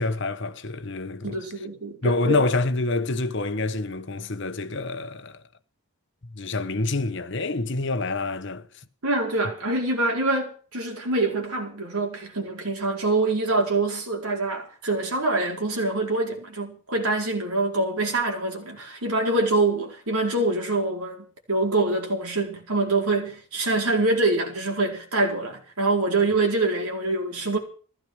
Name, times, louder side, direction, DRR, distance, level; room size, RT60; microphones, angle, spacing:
voice 1, 0.0-1.4 2.0-5.4 6.3-8.7, left 2 dB, 55° left, 1.1 m, -27 dB
voice 2, 1.2-2.4 9.0-27.6, right 2 dB, 85° right, 4.5 m, -25 dB
15.5 x 13.5 x 6.4 m
head